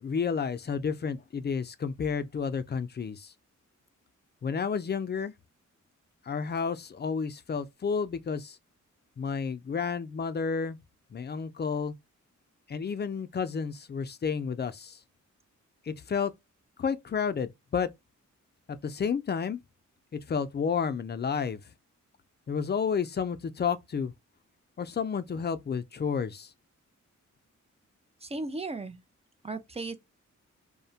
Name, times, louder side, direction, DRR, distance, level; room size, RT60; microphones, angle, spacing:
voice 1, 0.0-3.3 4.4-5.3 6.3-8.6 9.2-10.8 11.1-11.9 12.7-15.0 15.9-16.3 16.8-17.9 18.8-19.6 20.1-21.6 22.5-24.1 24.8-26.5, left 6 dB, 35° left, 0.4 m, -31 dB
voice 2, 28.2-29.0 29.4-29.9, right 3 dB, 20° right, 0.5 m, -35 dB
2.6 x 2.1 x 2.7 m
cardioid pair, 85°, 31 cm